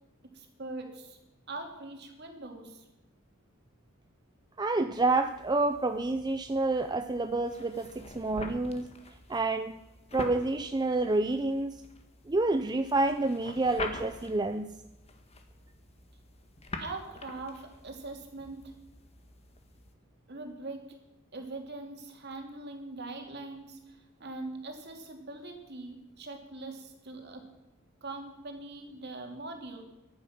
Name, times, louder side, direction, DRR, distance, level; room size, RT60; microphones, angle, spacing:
voice 1, 0.3-1.2 1.5-2.8 16.8-18.7 20.3-20.8 21.3-27.4 28.0-29.9, right 2 dB, 50° right, 3 dB, 2.7 m, -42 dB
voice 2, 4.6-8.9 9.3-9.8 10.1-11.8 12.3-14.8, right 2 dB, 20° right, 8 dB, 0.5 m, -28 dB
sound 1, 4.9-19.9, left 2 dB, 30° left, 1.5 m, -46 dB
15.5 x 11.5 x 5.9 m, 0.97 s
head